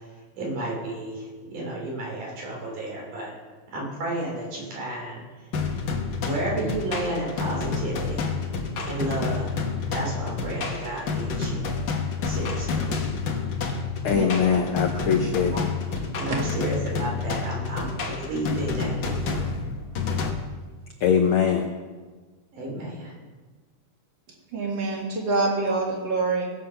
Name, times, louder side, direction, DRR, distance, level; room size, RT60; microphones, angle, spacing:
voice 1, 0.3-3.3 3.7-5.2 6.2-8.3 8.8-9.5 9.9-11.7 12.3-12.9 15.4-15.6 16.1-19.4 22.5-23.1, right 1 dB, 80° right, -2 dB, 4.8 m, -32 dB
sound 1, 5.5-20.3, left 4 dB, 50° left, 1.4 m, -29 dB
voice 2, 14.0-15.7 21.0-21.7, left 7 dB, 85° left, 4 dB, 1.2 m, -22 dB
voice 3, 24.5-26.5, right 3 dB, 40° right, -1 dB, 2.7 m, -26 dB
18.0 x 7.6 x 5.7 m, 1.4 s
omnidirectional pair, 3.6 m